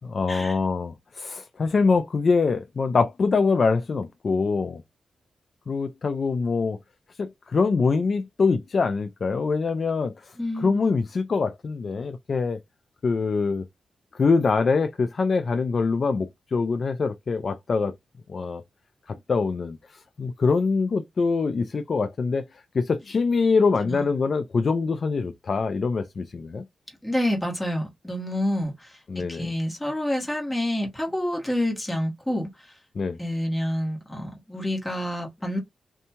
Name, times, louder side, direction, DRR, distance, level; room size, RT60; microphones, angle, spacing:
voice 1, 0.1-4.8 5.7-6.8 7.2-12.6 13.0-13.6 14.1-17.9 18.3-18.6 19.1-19.8 20.2-22.4 22.7-26.6 29.1-29.5 33.0-33.2, left 4 dB, 50° left, 0.3 m, -24 dB
voice 2, 10.4-10.9 23.8-24.1 27.0-32.7 33.2-35.6, left 1 dB, 10° left, 1.2 m, -28 dB
2.6 x 2.2 x 2.8 m
wide cardioid pair, 110°, 0 cm